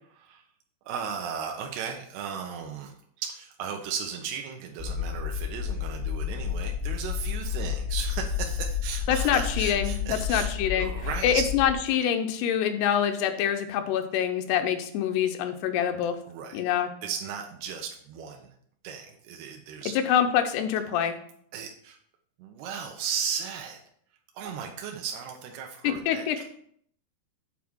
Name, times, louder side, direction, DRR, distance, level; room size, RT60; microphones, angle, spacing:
voice 1, 0.1-0.4 0.9-11.4 16.3-16.6 17.0-18.5 18.8-20.0 21.5-22.0 22.4-23.8 24.4-26.4, right 7 dB, 85° right, 2 dB, 2.8 m, -36 dB
sound 1, 4.8-11.7, left 8 dB, 30° right, 0.9 m, -31 dB
voice 2, 9.1-10.9 11.2-16.2 16.5-16.9 20.1-21.2 25.8-26.4, left 9 dB, 90° left, 7 dB, 2.8 m, -25 dB
8.4 x 3.6 x 6.0 m, 0.64 s
omnidirectional pair, 4.6 m